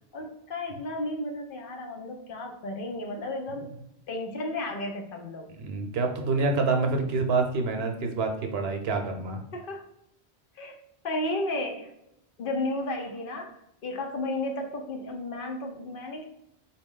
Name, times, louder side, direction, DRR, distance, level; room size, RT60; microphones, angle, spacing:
voice 1, 0.1-3.7 4.1-5.5 9.5-9.8 10.6-10.8 11.0-11.9 12.4-13.5 13.8-16.3, left 2 dB, 60° left, 3 dB, 0.7 m, -33 dB
voice 2, 5.6-9.4, right 3 dB, 75° right, 4 dB, 0.8 m, -27 dB
4.1 x 2.3 x 3.6 m, 0.77 s
omnidirectional pair, 1.1 m